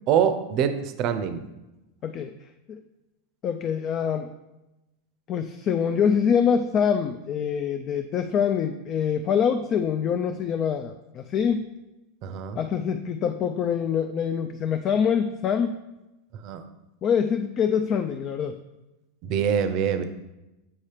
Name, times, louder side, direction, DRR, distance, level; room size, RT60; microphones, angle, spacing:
voice 1, 0.1-1.4 12.2-12.6 16.4-16.6 19.2-20.0, right 8 dB, 45° right, 10 dB, 0.5 m, -24 dB
voice 2, 2.0-2.3 2.7-2.8 3.4-4.3 5.3-11.7 12.6-15.8 17.0-18.6, left 7 dB, 35° left, 8 dB, 0.3 m, -25 dB
7.3 x 2.8 x 4.9 m, 0.98 s
supercardioid pair, 130°, 0 cm